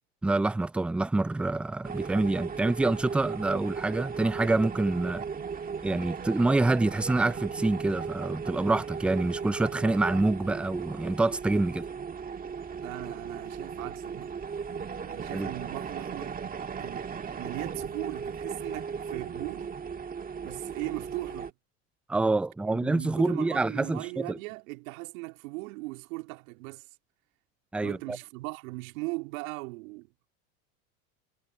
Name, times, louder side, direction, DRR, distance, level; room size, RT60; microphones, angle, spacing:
voice 1, 0.2-5.2 5.8-11.9 15.3-15.5 22.1-24.4 27.7-28.2, right 2 dB, 5° right, 0.3 m, -26 dB
sound 1, 1.8-21.5, right 6 dB, 20° right, 1.5 m, -37 dB
voice 2, 12.8-14.4 15.0-16.4 16.8-19.7 20.4-21.5 22.6-26.9 27.8-30.1, right 26 dB, 70° right, 2.7 m, -38 dB
hypercardioid pair, 100°, 43 cm